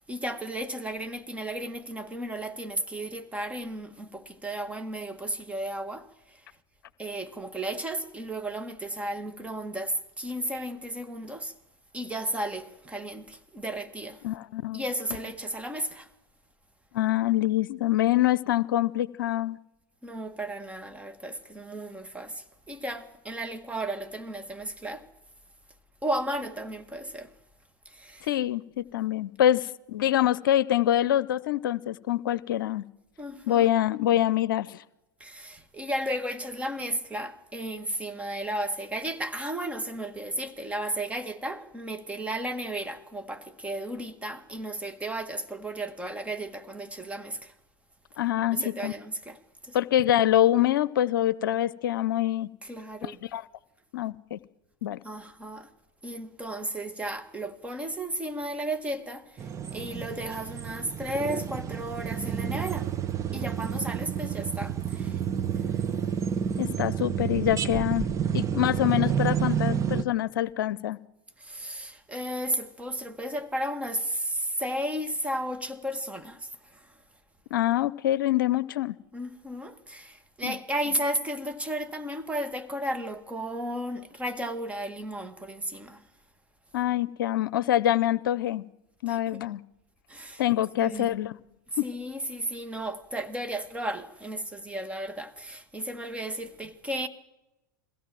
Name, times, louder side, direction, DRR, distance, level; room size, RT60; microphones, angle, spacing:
voice 1, 0.0-6.5 7.0-11.5 11.9-14.2 14.7-16.1 20.0-25.1 26.0-27.3 27.9-28.3 33.2-33.7 35.2-47.5 48.5-49.8 52.6-53.2 55.0-55.7 56.0-62.9 63.3-65.2 68.5-68.7 71.4-76.9 79.1-86.0 89.1-89.4 90.1-90.4 90.8-91.1 91.7-97.1, right 1 dB, 10° right, 1.8 m, -34 dB
voice 2, 14.2-14.8 16.9-19.6 28.3-32.8 33.5-34.8 48.2-48.9 49.7-52.5 53.0-53.4 53.9-54.4 54.8-55.0 66.6-68.1 68.3-71.0 77.5-79.0 80.4-80.5 86.7-88.6 89.0-89.6 90.4-91.3 91.8-91.9, left 13 dB, 70° left, 0.7 m, -25 dB
sound 1, 59.4-70.0, right 8 dB, 25° right, 1.1 m, -30 dB
22.0 x 16.5 x 7.7 m
hypercardioid pair, 90°, 11 cm